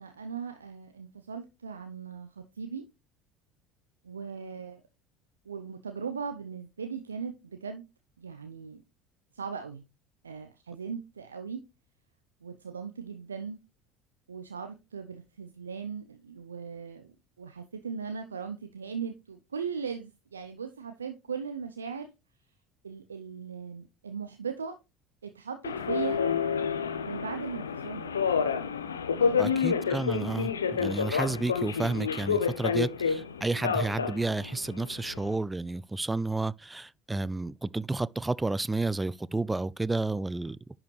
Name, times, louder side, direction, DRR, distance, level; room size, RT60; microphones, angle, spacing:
voice 1, 0.0-2.8 4.0-4.8 5.5-7.8 8.2-8.8 9.3-9.8 10.2-11.6 12.4-13.6 14.3-22.1 22.8-24.8 25.2-26.2 27.1-28.1 29.2-29.6, right 6 dB, 85° right, 0.6 m, -38 dB
Subway metro underground, 25.6-35.3, left 6 dB, 85° left, 0.6 m, -29 dB
voice 2, 29.4-40.8, right 2 dB, 15° right, 0.3 m, -31 dB
10.5 x 4.8 x 3.2 m
figure-of-eight pair, 65°, 0 cm